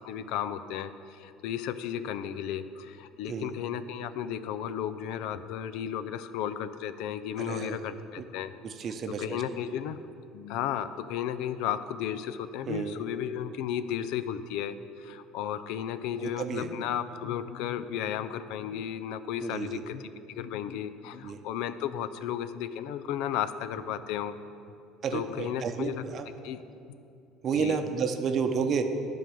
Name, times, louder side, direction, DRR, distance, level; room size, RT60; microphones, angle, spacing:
voice 1, 0.0-8.5 9.1-10.0 10.3-20.1 20.3-24.3 25.1-26.0 26.4-26.6 27.5-27.8, left 9 dB, 75° left, 12 dB, 0.3 m, -34 dB
voice 2, 7.4-7.8 8.2-8.3 8.6-9.6 12.7-13.0 16.2-16.7 19.4-19.7 21.2-21.4 25.0-26.2 27.4-28.8, right 6 dB, 50° right, 7 dB, 0.7 m, -31 dB
10.5 x 3.8 x 7.0 m, 2.6 s
hypercardioid pair, 80°, 0 cm